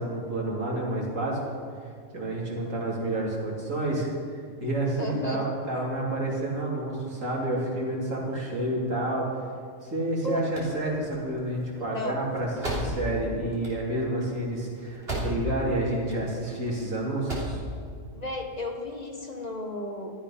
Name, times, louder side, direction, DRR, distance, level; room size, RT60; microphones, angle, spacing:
voice 1, 0.0-1.4 2.1-9.3 9.8-17.6, right 1 dB, 80° right, -3 dB, 3.3 m, -29 dB
voice 2, 5.0-5.5 10.2-10.5 11.8-12.2 18.1-20.1, left 1 dB, 35° left, 2 dB, 1.3 m, -33 dB
sound 1, 10.4-15.7 16.0-16.7 17.1-17.7, right 1 dB, 50° right, 3.3 m, -35 dB
14.0 x 12.5 x 5.8 m, 2.3 s
omnidirectional pair, 1.3 m